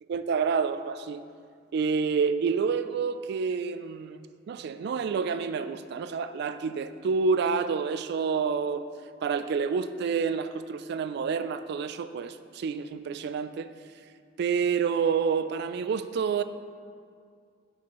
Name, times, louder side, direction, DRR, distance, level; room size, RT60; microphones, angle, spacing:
voice 1, 0.1-1.2 1.7-8.9 9.2-13.7 14.4-16.4, right 5 dB, 60° right, 11 dB, 0.3 m, -28 dB
10.5 x 4.3 x 3.0 m, 2.2 s
head